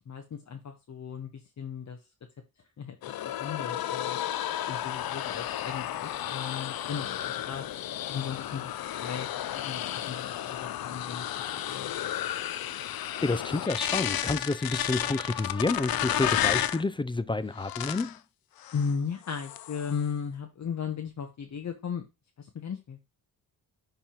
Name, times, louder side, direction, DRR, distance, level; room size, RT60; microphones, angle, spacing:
voice 1, 0.1-1.3 1.6-2.0 2.8-3.0 3.3-4.2 4.7-7.6 8.1-8.7 9.0-9.3 9.5-11.3 11.7-11.9 18.7-22.0 22.4-23.1, left 6 dB, 45° left, 1.0 m, -36 dB
sound 1, 3.0-16.8 17.6-18.2 18.6-18.9 19.3-20.0, left 12 dB, 65° left, 0.6 m, -32 dB
voice 2, 13.2-18.2, left 3 dB, 15° left, 0.3 m, -29 dB
10.5 x 3.5 x 4.3 m
wide cardioid pair, 130°, 38 cm